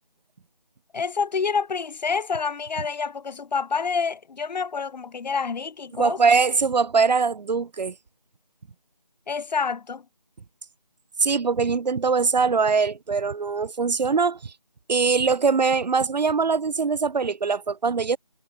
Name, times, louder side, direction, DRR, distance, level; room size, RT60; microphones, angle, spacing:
voice 1, 0.9-6.2 9.3-10.0, left 5 dB, 85° left, 0.4 m, -27 dB
voice 2, 5.9-7.9 11.2-14.5 14.9-18.2, right 5 dB, 90° right, 0.4 m, -22 dB
figure-of-eight pair, 170°, 21 cm